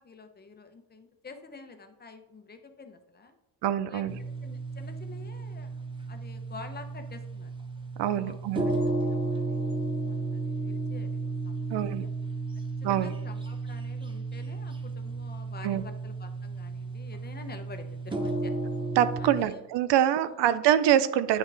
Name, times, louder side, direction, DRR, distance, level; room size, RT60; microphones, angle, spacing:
voice 1, 0.0-3.4 3.9-7.5 8.0-11.8 12.9-18.5 19.2-19.5 20.2-20.3, left 4 dB, 25° left, 6 dB, 0.7 m, -48 dB
voice 2, 3.6-4.2 8.0-8.6 11.7-12.1 12.8-13.1 15.6-15.8 19.0-21.4, right 11 dB, 85° right, 13 dB, 0.6 m, -25 dB
sound 1, 4.1-19.4, right 3 dB, 10° right, 0.7 m, -33 dB
9.2 x 5.9 x 3.4 m, 0.94 s
cardioid pair, 140°, 41 cm